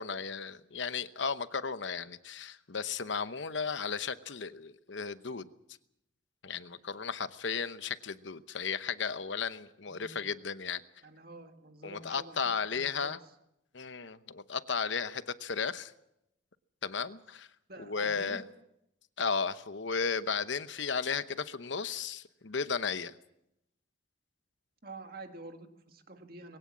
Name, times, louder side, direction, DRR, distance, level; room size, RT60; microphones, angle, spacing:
voice 1, 0.0-5.5 6.4-10.8 11.8-13.2 13.7-15.9 16.8-17.5 17.8-18.4 19.2-23.1, left 5 dB, 70° left, 0.9 m, -34 dB
voice 2, 9.9-10.3 11.0-12.4 12.7-13.2 17.7-18.4 24.8-26.6, right 2 dB, 50° right, 1.9 m, -48 dB
21.0 x 17.0 x 7.3 m
head